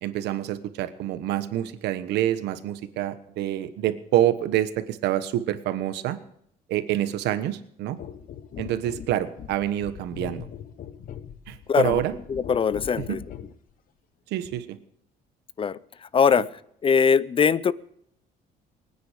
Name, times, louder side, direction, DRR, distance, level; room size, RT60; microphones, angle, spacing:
voice 1, 0.0-6.2 6.7-8.0 8.6-10.5 11.5-12.2 13.0-13.2 14.3-14.8, right 12 dB, 85° right, 12 dB, 1.2 m, -27 dB
sound 1, 8.0-13.6 14.4-14.6, left 9 dB, 55° left, 1.1 m, -40 dB
voice 2, 11.7-12.0 12.3-13.2 15.6-15.8 16.1-16.5 16.8-17.7, left 6 dB, 30° left, 19 dB, 0.5 m, -21 dB
24.0 x 9.5 x 5.1 m, 0.71 s
cardioid pair, 110°, 17 cm